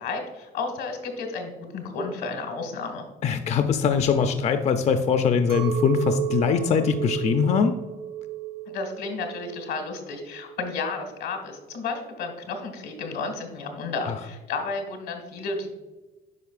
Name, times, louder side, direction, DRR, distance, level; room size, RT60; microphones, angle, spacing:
voice 1, 0.0-3.1 8.7-15.7, left 4 dB, 85° left, 4 dB, 1.6 m, -32 dB
voice 2, 3.2-7.8 14.1-14.2, left 6 dB, 40° left, 7 dB, 0.5 m, -22 dB
Chink clink, 5.5-10.9, right 11 dB, 65° right, 1.1 m, -33 dB
9.3 x 5.2 x 2.4 m, 1.2 s
cardioid pair, 110°, 17 cm